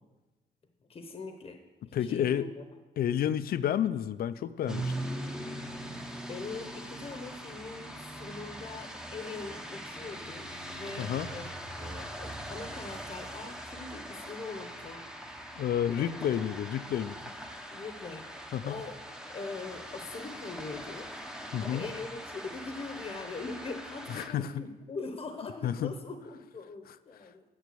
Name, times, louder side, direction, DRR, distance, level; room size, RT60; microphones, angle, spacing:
voice 1, 0.9-1.6 1.8-2.6 5.8-11.5 11.7-15.6 16.0-16.3 17.7-19.0 19.3-21.1 21.6-27.4, left 4 dB, 35° left, 6 dB, 0.9 m, -42 dB
voice 2, 1.9-2.5 3.0-4.9 11.0-11.3 15.6-17.2 18.5-18.7 21.5-21.8 24.1-24.6 25.6-25.9, left 10 dB, 65° left, 14 dB, 0.5 m, -30 dB
sound 1, 4.7-24.3, right 1 dB, 5° right, 0.8 m, -41 dB
9.5 x 7.3 x 6.8 m, 1.2 s
cardioid pair, 140°, 17 cm